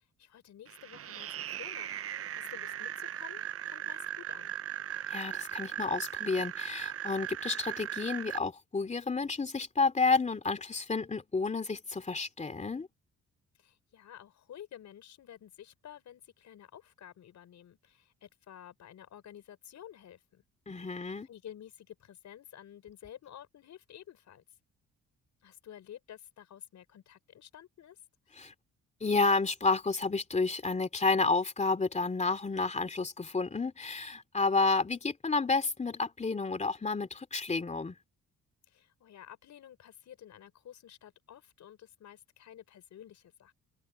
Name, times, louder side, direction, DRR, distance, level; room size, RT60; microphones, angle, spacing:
voice 1, 0.0-4.5 13.6-20.4 21.2-24.4 25.4-28.0 28.3-28.4 38.7-43.5, left 10 dB, 65° left, 4.7 m, -51 dB
sound 1, 0.7-8.4, right 11 dB, 50° right, 0.7 m, -38 dB
voice 2, 5.1-12.9 20.7-21.3 28.4-28.5 29.0-38.0, left 4 dB, 25° left, 2.8 m, -30 dB
cardioid pair, 90°, 30 cm